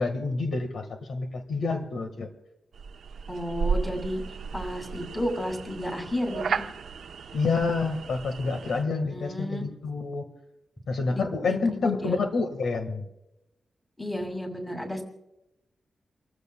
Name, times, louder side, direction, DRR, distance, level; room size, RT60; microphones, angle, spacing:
voice 1, 0.0-2.3 7.3-10.3 10.9-13.0, left 4 dB, 75° left, 6 dB, 1.6 m, -28 dB
sound 1, 2.7-8.8, right 5 dB, 90° right, 0.8 m, -34 dB
voice 2, 3.3-4.2 4.5-6.6 9.1-9.6 11.1-12.2 14.0-15.0, equal, 10° left, 3 dB, 2.4 m, -32 dB
30.0 x 14.5 x 2.3 m, 0.90 s
wide cardioid pair, 160°, 0 cm